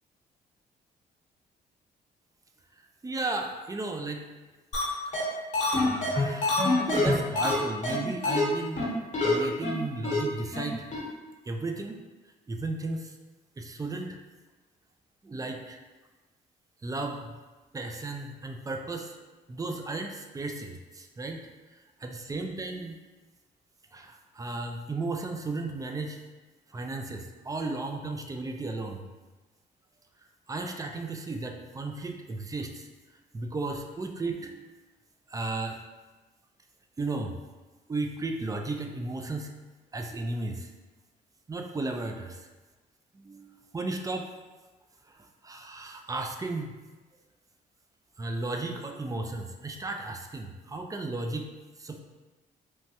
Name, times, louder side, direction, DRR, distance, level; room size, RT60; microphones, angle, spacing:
voice 1, 2.8-4.3 5.0-5.2 5.8-9.0 9.2-10.9 11.5-12.0 12.5-13.1 13.6-14.2 15.2-15.8 16.8-17.4 17.7-19.1 19.5-21.5 22.0-23.0 23.9-26.2 26.7-29.1 30.5-32.9 33.3-34.7 35.3-35.8 37.0-37.4 37.9-39.5 39.9-40.7 41.5-42.5 43.2-44.3 45.1-46.7 48.2-51.5 51.8-52.0, right 2 dB, 20° right, 3 dB, 0.3 m, -34 dB
sound 1, 4.7-4.8 5.1-5.2 5.5-7.6 7.8-7.9 8.2-8.4 8.8-8.9 9.1-9.3 9.6-9.7 10.0-10.2 10.5-10.6 10.9-11.0, left 3 dB, 40° left, 1.0 m, -25 dB
3.1 x 2.2 x 2.8 m, 1.2 s
cardioid pair, 70°, 18 cm